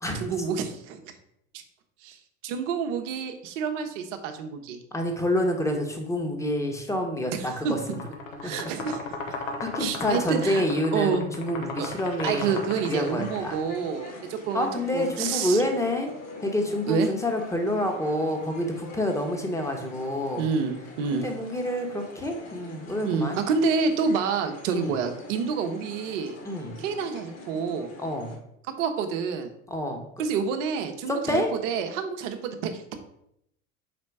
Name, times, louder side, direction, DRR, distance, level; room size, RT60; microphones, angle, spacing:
voice 1, 0.2-1.1 2.0-2.2 2.4-4.8 7.3-7.7 8.4-9.2 9.8-10.6 10.9-11.3 11.8-11.9 12.2-14.7 14.9-15.6 16.9-17.1 20.4-21.3 23.0-26.4 26.8-27.9 28.8-29.5 30.2-33.0, right 5 dB, 60° right, 6 dB, 1.0 m, -28 dB
voice 2, 4.9-8.0 8.4-8.5 9.6-13.6 14.5-16.1 16.4-20.4 21.1-23.4 24.7-24.9 26.4-26.8 28.0-28.3 29.7-30.2 31.1-31.5, left 1 dB, 5° left, 3 dB, 1.2 m, -28 dB
sound 1, 7.8-13.5, left 3 dB, 65° left, 1.3 m, -36 dB
sound 2, 12.5-28.4, left 2 dB, 35° left, 1.7 m, -45 dB
5.1 x 4.2 x 4.7 m, 0.76 s
figure-of-eight pair, 75°, 42 cm